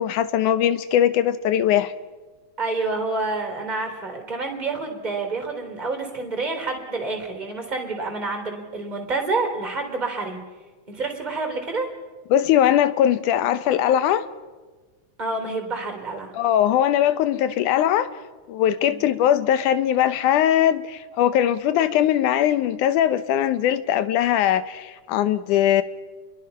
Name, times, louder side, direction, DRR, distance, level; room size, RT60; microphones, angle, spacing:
voice 1, 0.0-1.9 12.3-14.3 16.3-18.1 18.5-25.8, left 10 dB, 90° left, 2.5 m, -20 dB
voice 2, 2.6-10.4 10.9-11.9 15.2-16.3 18.8-19.0, right 3 dB, 15° right, 3.7 m, -28 dB
28.5 x 22.5 x 5.7 m
omnidirectional pair, 3.5 m